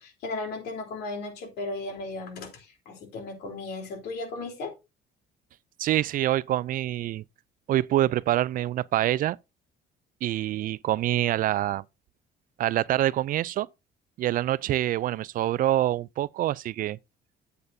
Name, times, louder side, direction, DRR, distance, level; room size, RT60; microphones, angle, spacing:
voice 1, 0.0-4.7, left 3 dB, 75° left, 3.6 m, -36 dB
voice 2, 5.8-7.2 7.7-9.4 10.2-11.8 12.6-13.7 14.2-17.0, right 13 dB, 55° right, 0.4 m, -26 dB
10.5 x 8.1 x 2.7 m
cardioid pair, 110°, 17 cm